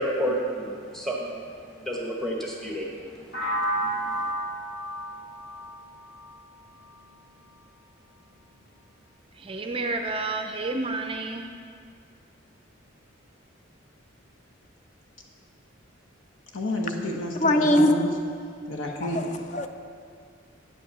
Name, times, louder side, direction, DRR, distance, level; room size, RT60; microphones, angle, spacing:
voice 1, 0.0-4.3, equal, ahead, -2 dB, 1.0 m, -32 dB
sound 1, 3.3-7.2, right 1 dB, 55° left, 2.5 m, -32 dB
voice 2, 9.4-11.5, right 3 dB, 25° right, 5 dB, 0.4 m, -30 dB
voice 3, 16.5-18.1 18.7-19.2, left 1 dB, 80° left, 0 dB, 1.2 m, -30 dB
voice 4, 17.4-17.9 19.0-19.7, left 1 dB, 40° left, 6 dB, 0.5 m, -22 dB
9.5 x 5.4 x 6.7 m, 2.2 s
head